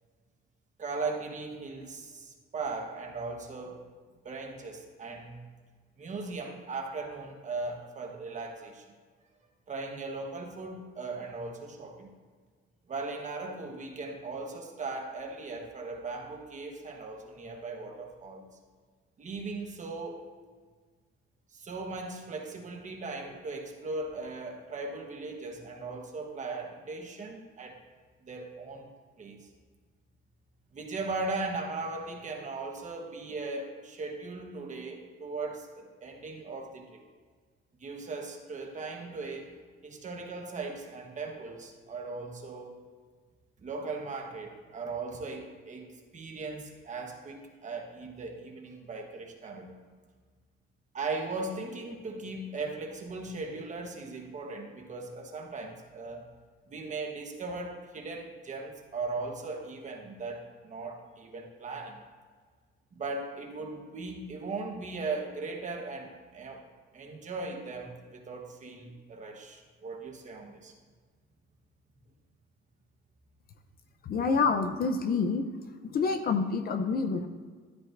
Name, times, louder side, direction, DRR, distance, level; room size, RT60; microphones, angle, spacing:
voice 1, 0.8-3.8 4.2-5.4 6.0-8.8 9.7-12.1 12.9-18.5 19.2-20.2 21.5-27.8 28.2-28.9 29.2-29.5 30.7-37.0 37.8-39.5 39.8-42.7 43.6-49.8 50.9-56.3 56.7-62.0 62.9-66.7 66.9-70.7, right 3 dB, 35° right, 2 dB, 1.2 m, -38 dB
voice 2, 74.0-75.4 75.8-77.3, left 4 dB, 45° left, 8 dB, 0.6 m, -27 dB
13.0 x 10.5 x 2.6 m, 1.6 s
cardioid pair, 165°, 21 cm